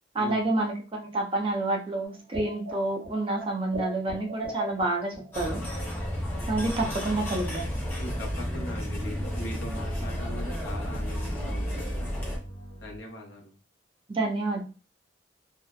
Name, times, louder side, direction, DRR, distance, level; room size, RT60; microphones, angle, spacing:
voice 1, 0.1-5.6 6.5-7.7 14.1-14.6, right 2 dB, 30° right, 1 dB, 0.4 m, -28 dB
sound 1, 2.0-5.9 6.1-6.2 6.5-7.6 7.9-8.3 8.6-8.7 9.0-9.1 9.3-9.6, right 1 dB, 75° right, 0.8 m, -41 dB
sound 2, 5.3-12.4, equal, 10° left, 0.8 m, -32 dB
sound 3, 6.6-13.0, equal, 40° left, 1.0 m, -47 dB
voice 2, 8.0-12.1 12.8-13.5, left 1 dB, 70° left, 0 dB, 0.7 m, -40 dB
2.6 x 2.0 x 2.3 m, 0.34 s
head